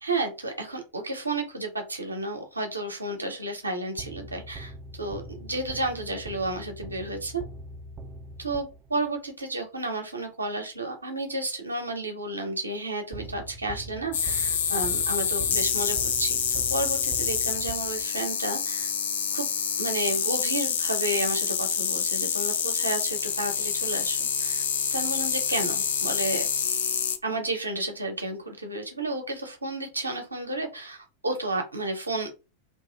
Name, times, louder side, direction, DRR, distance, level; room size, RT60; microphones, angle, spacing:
voice 1, 0.0-7.4 8.4-16.4 16.7-18.9 19.3-19.5 19.8-24.6 24.9-26.5 27.2-32.3, right 2 dB, 80° right, 4 dB, 0.6 m, -32 dB
sound 1, 4.0-9.1 13.1-18.3, right 2 dB, 25° right, 0.3 m, -42 dB
sound 2, 14.1-27.2, left 7 dB, 60° left, 0.4 m, -27 dB
2.6 x 2.3 x 2.3 m, 0.29 s
figure-of-eight pair, 90°, 0 cm